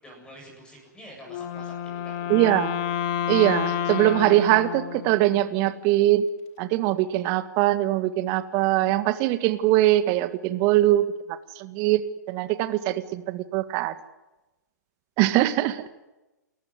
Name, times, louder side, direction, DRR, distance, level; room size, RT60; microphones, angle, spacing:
voice 1, 0.0-2.7 5.1-5.3, equal, 10° left, 0 dB, 7.9 m, -47 dB
Wind instrument woodwind instrument, 1.3-5.5, left 9 dB, 30° left, 2.1 m, -30 dB
voice 2, 2.3-2.8 3.3-6.3 6.6-11.1 11.6-12.0 12.3-13.9 15.2-15.9, right 15 dB, 30° right, 13 dB, 1.7 m, -22 dB
29.0 x 14.0 x 9.9 m, 1.0 s
figure-of-eight pair, 115°, 10 cm